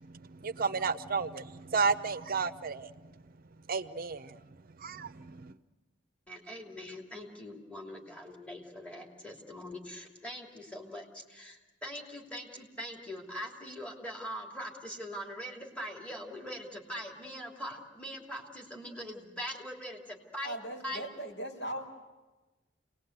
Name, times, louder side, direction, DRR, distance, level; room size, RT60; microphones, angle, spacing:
voice 1, 0.0-3.1 3.7-4.4 4.8-5.5, right 5 dB, 50° right, 12 dB, 0.7 m, -33 dB
voice 2, 6.3-20.6 20.8-21.0, equal, 5° left, -1 dB, 3.0 m, -42 dB
voice 3, 20.4-21.9, right 1 dB, 70° left, 1 dB, 5.7 m, -39 dB
28.5 x 20.0 x 8.1 m, 1.2 s
head